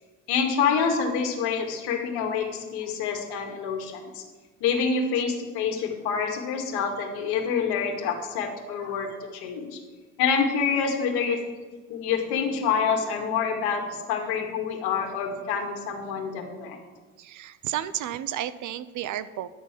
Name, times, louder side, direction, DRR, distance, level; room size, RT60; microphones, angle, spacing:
voice 1, 0.3-4.1 4.6-9.8 10.2-11.4 11.9-16.8, left 6 dB, 65° left, 2 dB, 2.1 m, -27 dB
voice 2, 17.2-19.5, right 12 dB, 45° right, 14 dB, 0.6 m, -32 dB
11.0 x 6.9 x 5.9 m, 1.3 s
hypercardioid pair, 70°, 41 cm